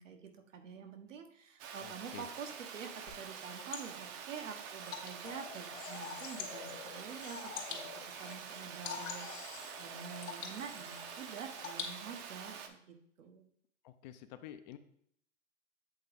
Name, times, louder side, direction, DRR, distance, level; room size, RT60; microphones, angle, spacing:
voice 1, 0.0-7.8 8.0-13.4, right 6 dB, 80° right, 4 dB, 1.2 m, -47 dB
Water, 1.6-12.7, right 7 dB, 30° right, 0.6 m, -47 dB
voice 2, 1.8-2.2 13.8-14.8, left 11 dB, 35° left, 10 dB, 0.4 m, -49 dB
Water / Drip, 3.1-12.4, left 6 dB, 80° left, 1.6 m, -48 dB
sound 1, 5.2-8.5 8.8-11.7, left 7 dB, 55° left, 1.1 m, -49 dB
7.8 x 3.7 x 3.5 m, 0.67 s
hypercardioid pair, 125°, 38 cm